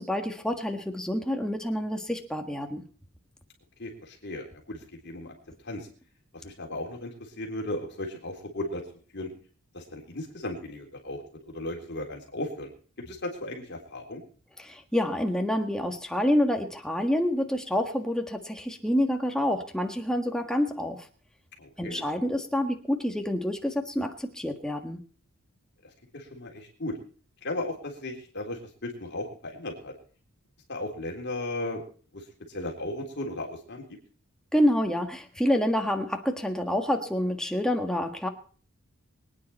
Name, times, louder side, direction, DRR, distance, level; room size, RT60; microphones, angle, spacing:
voice 1, 0.0-2.8 14.6-21.0 21.8-25.0 34.5-38.3, left 1 dB, 5° left, 4 dB, 1.7 m, -27 dB
voice 2, 3.8-5.3 5.6-5.9 6.3-8.8 9.1-9.3 9.7-12.7 13.0-14.2 21.6-22.1 26.1-27.0 27.4-29.9 30.7-31.8 32.1-34.0, left 1 dB, 50° left, 1 dB, 3.6 m, -36 dB
24.0 x 9.6 x 4.3 m, 0.42 s
head